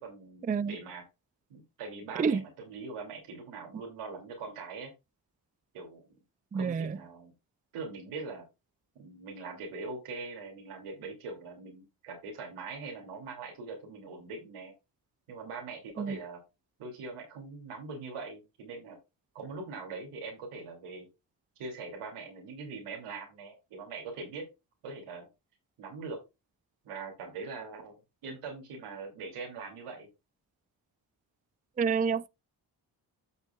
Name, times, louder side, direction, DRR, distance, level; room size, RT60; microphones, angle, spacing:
voice 1, 0.0-1.0 1.5-4.9 5.7-6.0 6.5-7.3 7.7-8.4 8.9-14.7 15.3-16.4 16.8-19.0 19.3-21.1 21.6-24.4 24.8-25.3 25.8-26.2 26.8-30.1, right 4 dB, 85° right, 2.7 m, -42 dB
voice 2, 6.5-7.0 16.0-16.2 31.8-32.3, right 6 dB, 20° right, 0.4 m, -28 dB
12.5 x 6.3 x 2.3 m
supercardioid pair, 45°, 50 cm